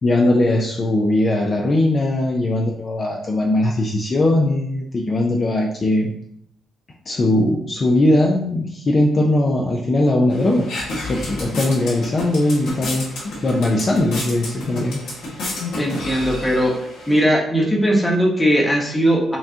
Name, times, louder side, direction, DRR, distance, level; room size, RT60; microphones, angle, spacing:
voice 1, 0.0-6.1 7.1-10.7 11.1-15.0, left 1 dB, 40° left, -1 dB, 0.5 m, -19 dB
sound 1, 10.3-17.2, left 2 dB, 80° left, 1.6 m, -30 dB
voice 2, 15.8-16.8 17.1-19.4, equal, 15° left, 0 dB, 1.1 m, -18 dB
5.8 x 2.3 x 2.8 m, 0.71 s
cardioid pair, 90°, 0 cm